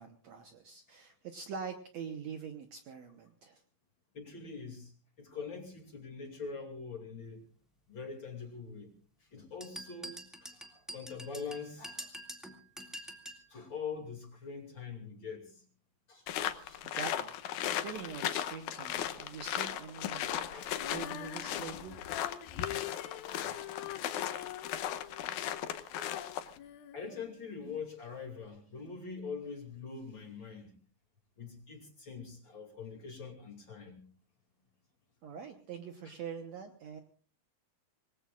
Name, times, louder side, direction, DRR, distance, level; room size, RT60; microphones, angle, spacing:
voice 1, 0.0-3.6 16.8-20.3 20.9-22.0 35.2-37.0, right 6 dB, 65° right, 6 dB, 1.9 m, -44 dB
voice 2, 4.1-4.9 5.2-7.4 7.9-8.9 9.2-12.1 13.5-15.7 16.1-16.3 16.6-16.8 20.4-20.7 23.4-23.5 24.4-24.5 26.9-30.8 31.4-34.1 36.0-36.2, left 5 dB, 35° left, 4 dB, 2.9 m, -44 dB
sound 1, 9.6-13.5, equal, ahead, 1.1 m, -46 dB
sound 2, 16.3-26.6, left 11 dB, 70° left, 2.1 m, -37 dB
Female singing, 20.8-27.8 28.4-28.5, left 11 dB, 90° left, 3.0 m, -45 dB
27.0 x 20.0 x 2.5 m, 0.40 s
omnidirectional pair, 4.1 m